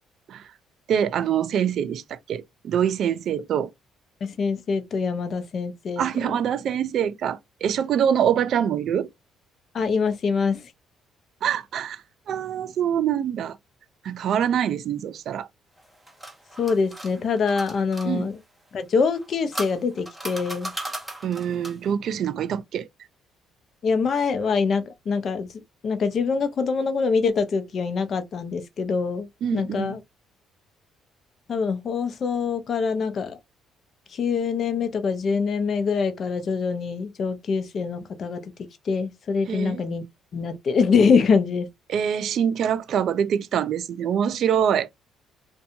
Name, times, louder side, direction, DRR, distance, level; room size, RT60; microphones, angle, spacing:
voice 1, 0.9-3.7 6.0-9.1 11.4-12.0 12.3-13.6 14.0-15.5 18.0-18.3 21.2-22.9 29.4-30.0 39.5-39.8 41.9-44.9, right 8 dB, 60° right, 0.4 m, -25 dB
voice 2, 4.2-6.0 9.7-10.6 16.6-18.4 18.7-20.7 23.8-25.5 25.8-30.0 31.5-33.4 34.1-38.4 38.9-40.0 40.3-41.7, left 5 dB, 50° left, 0.6 m, -24 dB
Plastic Shutter, 15.8-18.1 19.1-21.9, right 1 dB, 5° right, 0.8 m, -37 dB
2.6 x 2.2 x 2.6 m
cardioid pair, 100°, 0 cm